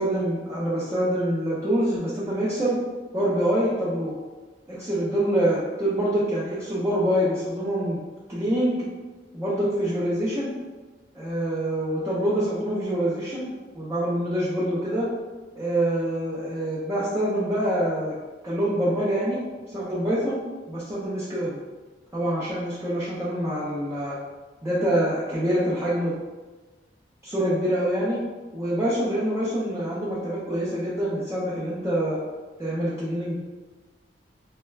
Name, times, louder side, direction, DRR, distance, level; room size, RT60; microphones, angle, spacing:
voice 1, 0.0-2.8 3.1-4.2 4.7-8.0 8.3-8.9 9.3-10.5 11.1-15.1 15.6-18.2 18.4-19.4 19.7-20.4 20.7-21.6 22.1-24.2 24.6-26.2 27.2-28.2 28.5-32.2 32.6-33.4, right 1 dB, 15° right, -9 dB, 0.4 m, -25 dB
2.3 x 2.1 x 3.1 m, 1.3 s
head